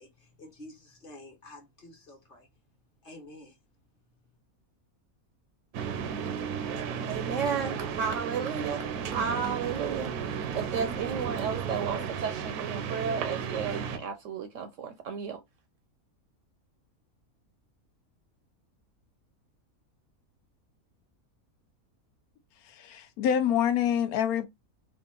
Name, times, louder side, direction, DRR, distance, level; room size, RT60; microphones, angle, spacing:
voice 1, 0.0-2.5 3.0-3.5, left 1 dB, 40° left, 1.4 m, -49 dB
sound 1, 5.7-14.0, right 7 dB, 90° right, 1.2 m, -34 dB
voice 2, 7.1-10.1 10.5-15.4, right 6 dB, 70° right, 0.8 m, -33 dB
voice 3, 22.8-24.5, left 9 dB, 80° left, 1.1 m, -26 dB
3.7 x 2.5 x 3.7 m
omnidirectional pair, 1.5 m